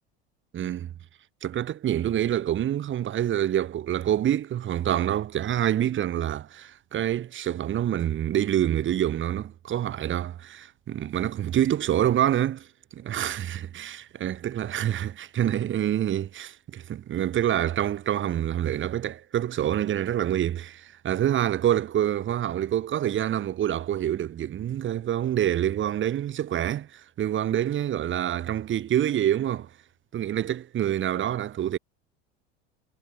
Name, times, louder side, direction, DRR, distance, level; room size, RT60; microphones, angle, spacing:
voice 1, 0.5-0.9 1.4-12.7 12.9-29.7 30.1-31.8, right 11 dB, 40° right, 3.8 m, -26 dB
hypercardioid pair, 95°, 29 cm